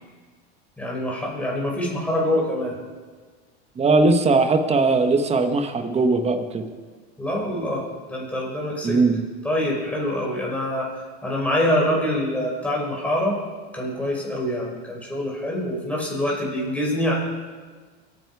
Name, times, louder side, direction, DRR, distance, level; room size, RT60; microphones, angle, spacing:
voice 1, 0.8-2.7 7.2-9.0 9.4-10.9 11.2-13.4 13.7-17.2, left 1 dB, 5° left, -3 dB, 5.5 m, -25 dB
voice 2, 3.8-6.6 8.8-9.2, right 3 dB, 20° right, 7 dB, 1.3 m, -19 dB
23.0 x 9.9 x 4.8 m, 1.5 s
supercardioid pair, 120°, 33 cm